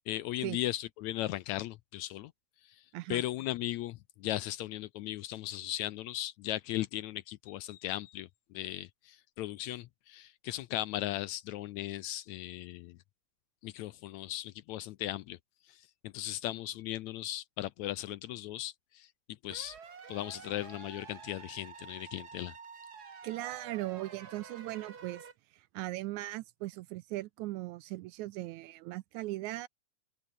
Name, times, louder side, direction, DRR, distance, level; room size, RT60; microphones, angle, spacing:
voice 1, 0.0-2.3 2.6-2.8 3.1-13.0 13.6-15.4 15.7-19.1 19.4-19.8 20.1-22.5, left 14 dB, 80° left, 1.8 m, -37 dB
sound 1, 19.5-25.3, right 6 dB, 35° right, 2.0 m, -49 dB
voice 2, 23.2-25.3 25.5-29.7, right 17 dB, 80° right, 1.8 m, -38 dB
open air
omnidirectional pair, 3.7 m